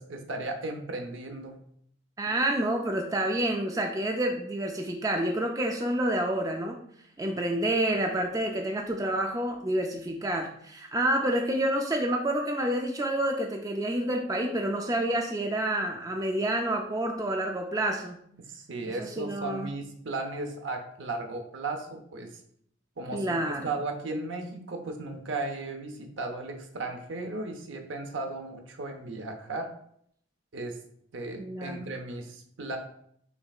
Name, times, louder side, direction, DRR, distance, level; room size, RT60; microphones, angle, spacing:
voice 1, 0.0-1.5 18.5-22.3 23.0-29.7 30.5-30.8 31.1-32.8, right 2 dB, 75° right, 5 dB, 0.7 m, -35 dB
voice 2, 2.2-6.8 7.2-18.2 18.9-19.7 23.1-23.7 31.4-31.9, right 1 dB, 15° right, 2 dB, 0.4 m, -28 dB
5.7 x 3.3 x 2.4 m, 0.68 s
head